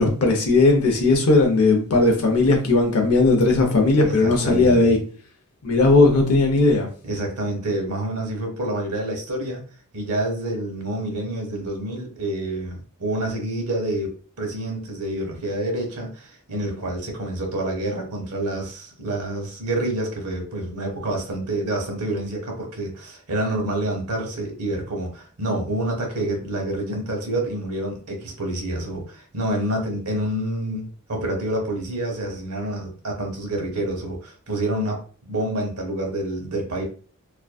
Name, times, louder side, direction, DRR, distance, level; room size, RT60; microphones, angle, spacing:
voice 1, 0.0-5.0 5.6-6.9, left 3 dB, 70° left, 3 dB, 0.6 m, -17 dB
voice 2, 4.0-4.9 7.0-9.6 9.9-36.8, right 1 dB, 80° right, 2 dB, 0.8 m, -28 dB
2.5 x 2.2 x 2.3 m, 0.41 s
head